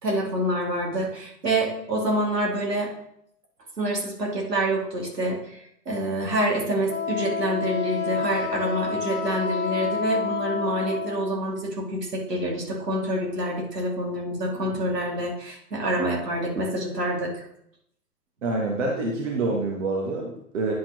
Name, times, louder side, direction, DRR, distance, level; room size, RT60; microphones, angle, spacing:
voice 1, 0.0-2.9 3.8-5.6 5.9-17.4, right 1 dB, 75° right, -2 dB, 2.5 m, -27 dB
Wind instrument woodwind instrument, 6.9-11.3, left 6 dB, 45° left, 0.8 m, -29 dB
voice 2, 18.4-20.7, right 2 dB, 45° right, -1 dB, 1.4 m, -27 dB
10.0 x 5.7 x 2.9 m, 0.74 s
figure-of-eight pair, 120°, 49 cm